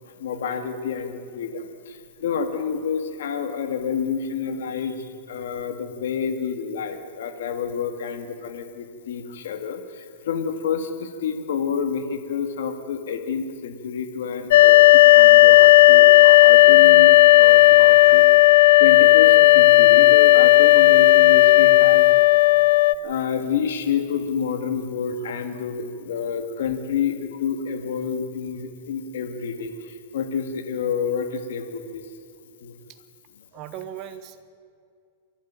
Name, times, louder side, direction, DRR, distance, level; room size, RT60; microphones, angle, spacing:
voice 1, 0.2-18.2 18.8-22.1 23.0-32.0 32.6-32.7, left 6 dB, 80° left, 7 dB, 2.1 m, -29 dB
sound 1, 14.5-22.9, left 17 dB, 65° left, 0.5 m, -12 dB
voice 2, 17.9-18.3 33.5-34.4, right 10 dB, 35° right, 9 dB, 1.2 m, -38 dB
27.5 x 11.5 x 9.0 m, 2.3 s
supercardioid pair, 155°, 0 cm